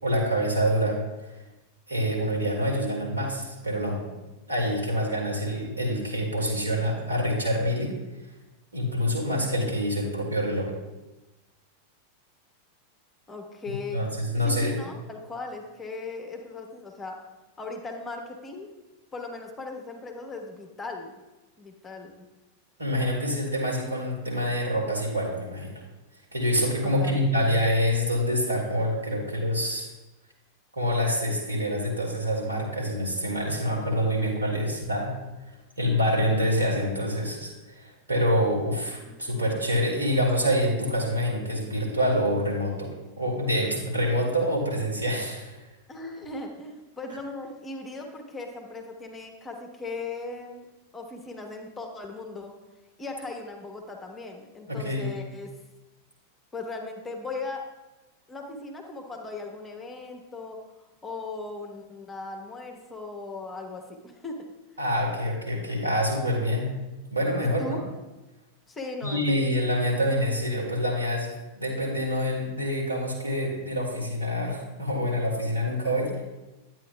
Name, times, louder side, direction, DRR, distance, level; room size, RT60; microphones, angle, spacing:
voice 1, 0.0-1.0 1.9-4.0 4.5-7.9 8.7-10.7 13.7-14.8 22.8-25.7 26.3-29.9 30.8-35.2 35.8-42.9 43.2-45.6 54.7-55.1 64.8-66.7 67.1-67.8 69.0-76.1, equal, 80° right, -2 dB, 2.2 m, -26 dB
voice 2, 13.3-14.0 14.4-17.2 17.6-18.7 19.1-21.2 21.6-22.3 26.8-27.5 39.1-39.5 45.9-50.7 50.9-52.5 53.0-55.5 56.5-57.6 58.3-60.6 61.0-64.4 67.4-67.8 68.7-69.5, left 3 dB, 15° left, 2 dB, 1.1 m, -38 dB
10.5 x 9.0 x 2.3 m, 1.1 s
figure-of-eight pair, 90°, 0 cm